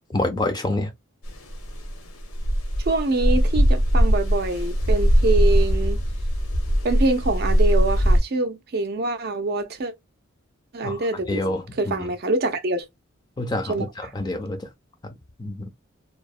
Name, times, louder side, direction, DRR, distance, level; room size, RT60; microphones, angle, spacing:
voice 1, 0.1-0.9 10.8-11.0 11.3-11.9 13.4-14.7 15.4-15.7, left 2 dB, 20° left, 0.4 m, -27 dB
sound 1, 1.3-8.2, equal, 80° left, 0.7 m, -20 dB
voice 2, 2.8-6.0 6.8-9.9 10.7-11.4 11.8-12.9 13.7-14.1, right 2 dB, 45° right, 0.4 m, -25 dB
2.8 x 2.0 x 2.3 m
head